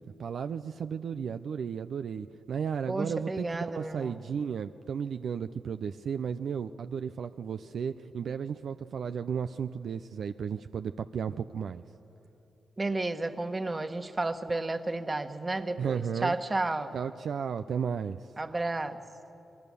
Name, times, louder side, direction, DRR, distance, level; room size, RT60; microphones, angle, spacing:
voice 1, 0.2-11.8 15.8-16.3 16.9-18.2, right 7 dB, 75° right, 9 dB, 0.5 m, -34 dB
voice 2, 2.9-4.2 12.8-17.0 18.4-19.0, right 2 dB, 30° right, 8 dB, 1.5 m, -32 dB
26.5 x 22.0 x 7.0 m, 2.9 s
supercardioid pair, 45°, 0 cm